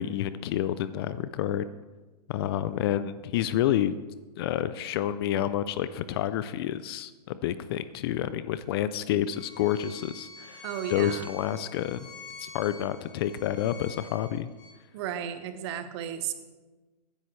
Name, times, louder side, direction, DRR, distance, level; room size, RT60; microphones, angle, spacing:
voice 1, 0.0-1.7 2.3-4.0 4.4-12.1 12.4-14.5, left 11 dB, 35° left, 14 dB, 0.4 m, -29 dB
Bowed string instrument, 9.3-14.7, left 3 dB, 20° left, 1.4 m, -46 dB
voice 2, 10.6-11.3 14.9-16.3, right 10 dB, 40° right, 10 dB, 1.0 m, -34 dB
14.5 x 10.0 x 3.2 m, 1.2 s
hypercardioid pair, 130°, 21 cm